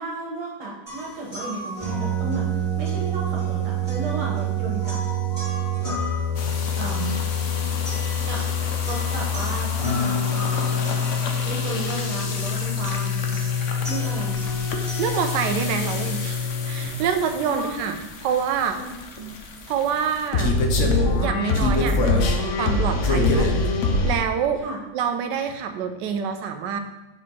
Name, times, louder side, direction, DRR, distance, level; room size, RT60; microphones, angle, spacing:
voice 1, 0.0-5.0 5.8-6.0 6.8-7.3 8.3-8.4 8.8-11.0 11.4-13.5 13.9-14.6 17.4-18.1 18.8-19.4 24.6-24.8, right 2 dB, 90° right, -2 dB, 2.1 m, -34 dB
sound 1, 0.9-16.9, left 2 dB, 15° right, 2.2 m, -26 dB
sound 2, 6.4-24.1, left 2 dB, 80° left, 0.6 m, -27 dB
voice 2, 15.0-16.4 16.7-18.0 18.2-18.8 19.7-20.6 21.2-22.3 22.6-23.5 24.0-24.6 24.9-26.8, right 7 dB, 75° right, 7 dB, 1.1 m, -26 dB
5.1 x 4.2 x 5.4 m, 0.98 s
omnidirectional pair, 2.2 m